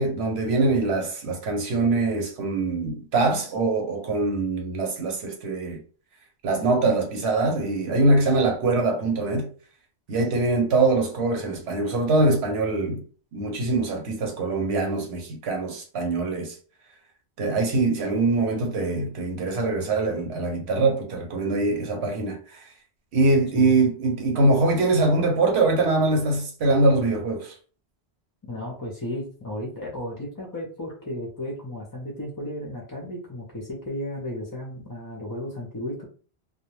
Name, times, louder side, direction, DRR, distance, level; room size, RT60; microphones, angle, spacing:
voice 1, 0.0-5.8 6.4-9.5 10.1-13.0 13.3-16.6 17.4-22.6 23.1-27.5, right 2 dB, 80° right, 1.0 m, -23 dB
voice 2, 23.5-23.8 28.4-36.1, left 1 dB, 30° left, 0.4 m, -34 dB
2.3 x 2.1 x 3.0 m
omnidirectional pair, 1.1 m